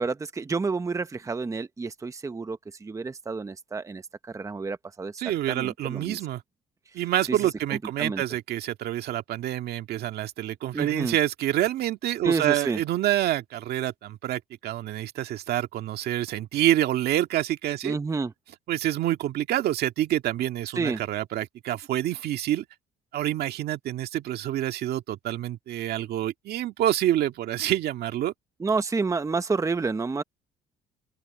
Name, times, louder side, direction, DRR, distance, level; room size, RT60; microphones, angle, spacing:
voice 1, 0.0-4.0 4.3-5.2 5.5-6.2 7.3-7.4 7.7-8.2 10.7-11.2 12.2-12.8 17.8-18.3 20.8-21.0 28.6-30.2, right 4 dB, 20° right, 1.0 m, -29 dB
voice 2, 5.2-6.4 6.9-18.0 18.7-22.7 23.1-28.3, right 13 dB, 70° right, 2.0 m, -27 dB
open air
cardioid pair, 110°, 17 cm